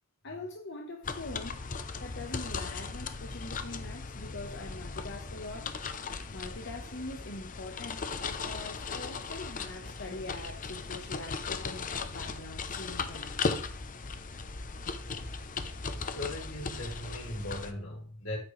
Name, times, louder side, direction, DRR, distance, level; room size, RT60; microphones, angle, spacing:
voice 1, 0.2-5.7 6.3-13.4, left 2 dB, 55° left, 1.3 m, -43 dB
sound 1, 1.0-17.7, left 4 dB, 40° left, 0.8 m, -37 dB
voice 2, 16.0-18.4, left 1 dB, 85° left, 4.9 m, -39 dB
9.1 x 8.9 x 3.3 m
head